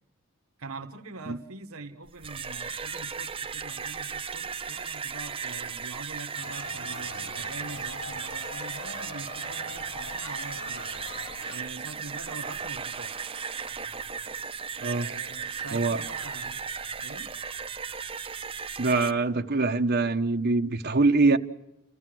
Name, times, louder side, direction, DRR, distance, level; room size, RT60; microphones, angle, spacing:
voice 1, 0.6-11.0 11.5-13.2 14.8-16.6 17.0-17.3, right 3 dB, 75° right, 1.0 m, -43 dB
sound 1, 2.1-19.1, right 6 dB, 25° right, 0.8 m, -36 dB
sound 2, 6.4-11.6, left 3 dB, 75° left, 5.4 m, -43 dB
voice 2, 15.7-16.0 18.8-21.4, right 3 dB, 50° right, 1.0 m, -24 dB
29.5 x 15.0 x 7.6 m
head